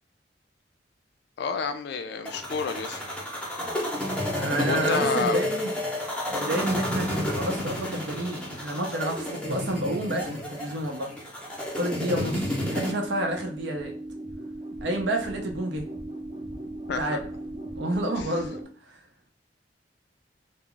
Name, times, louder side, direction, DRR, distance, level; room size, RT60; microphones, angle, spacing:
voice 1, 1.4-3.0 4.6-5.4 16.9-17.2 18.2-18.3, left 5 dB, 65° left, 9 dB, 0.3 m, -30 dB
sound 1, 2.3-12.9, left 1 dB, 5° left, 0.7 m, -30 dB
voice 2, 4.3-5.7 6.3-11.1 11.7-14.0 14.8-15.9 17.0-17.2 17.7-18.6 18.9-19.0, right 1 dB, 75° right, 3 dB, 0.6 m, -30 dB
sound 2, 12.4-18.6, right 1 dB, 30° right, 0.6 m, -38 dB
2.3 x 2.0 x 3.7 m, 0.43 s
head